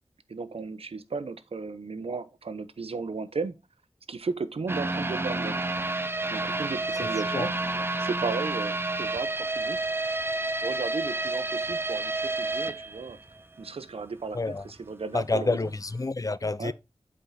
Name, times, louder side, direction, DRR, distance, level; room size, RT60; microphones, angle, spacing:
voice 1, 0.3-3.6 4.1-5.5 6.3-7.5 8.0-9.8 10.6-13.2 13.6-14.4 14.6-15.6 16.6-16.7, right 4 dB, 80° right, 0.8 m, -34 dB
sound 1, 4.7-13.7 14.0-14.1 14.6-14.7, right 2 dB, 25° right, 0.6 m, -30 dB
voice 2, 7.0-7.5 14.3-14.6 15.1-16.7, left 3 dB, 35° left, 0.6 m, -29 dB
8.1 x 4.8 x 4.0 m
cardioid pair, 45°, 10 cm